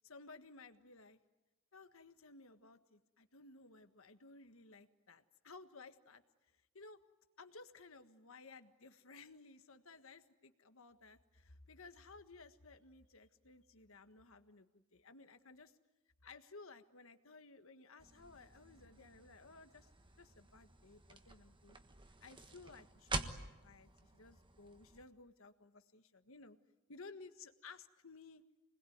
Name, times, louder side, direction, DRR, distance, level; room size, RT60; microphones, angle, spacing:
voice 1, 0.0-1.2 1.7-6.2 6.5-7.0 7.4-15.7 16.2-19.9 20.2-21.8 22.2-26.6 26.9-28.4, left 3 dB, 70° left, 9 dB, 1.5 m, -57 dB
sound 1, 18.0-25.0, right 3 dB, 25° right, 1.4 m, -48 dB
27.5 x 21.0 x 9.5 m, 1.1 s
head